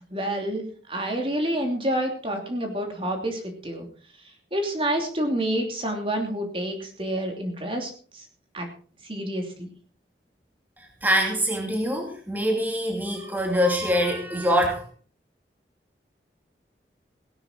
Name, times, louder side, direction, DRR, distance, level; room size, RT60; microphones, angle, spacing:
voice 1, 0.1-3.9 4.5-8.2 8.5-8.7 9.1-9.7, right 1 dB, 30° right, 3 dB, 2.9 m, -28 dB
voice 2, 10.8-14.8, equal, 10° right, 1 dB, 2.6 m, -24 dB
17.0 x 12.0 x 4.4 m, 0.41 s
head